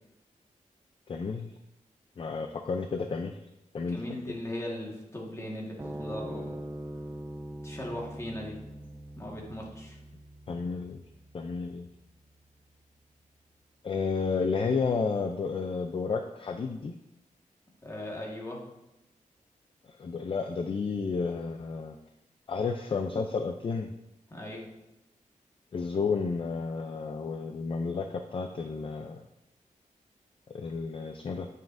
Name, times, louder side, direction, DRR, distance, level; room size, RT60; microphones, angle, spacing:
voice 1, 1.1-1.5 2.2-3.3 3.7-4.0 10.5-11.0 11.3-11.9 13.8-16.9 19.9-22.0 22.5-23.9 25.7-29.2 30.5-31.5, left 4 dB, 40° left, 6 dB, 0.4 m, -31 dB
voice 2, 3.9-6.6 7.6-8.6 9.2-10.0 17.8-18.6 24.3-24.7, left 1 dB, 20° left, -2 dB, 1.5 m, -38 dB
sound 1, 5.8-12.4, right 1 dB, 20° right, 0.6 m, -43 dB
9.2 x 6.0 x 2.6 m, 0.91 s
wide cardioid pair, 145°, 14 cm